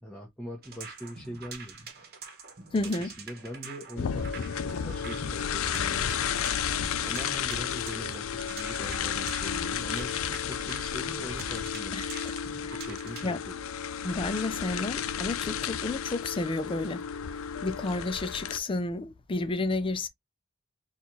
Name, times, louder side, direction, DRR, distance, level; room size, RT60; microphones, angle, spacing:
voice 1, 0.0-1.9 2.7-6.4 7.0-12.0 12.7-13.7, equal, 5° left, 0.9 m, -42 dB
sound 1, 0.6-13.3, right 5 dB, 50° right, 1.0 m, -45 dB
voice 2, 2.7-3.1 11.9-12.4 12.6-12.8 13.2-13.4 14.0-17.0 17.6-20.1, left 2 dB, 25° left, 0.4 m, -31 dB
sound 2, 4.0-18.6, left 8 dB, 85° left, 0.4 m, -32 dB
4.2 x 2.4 x 2.9 m
head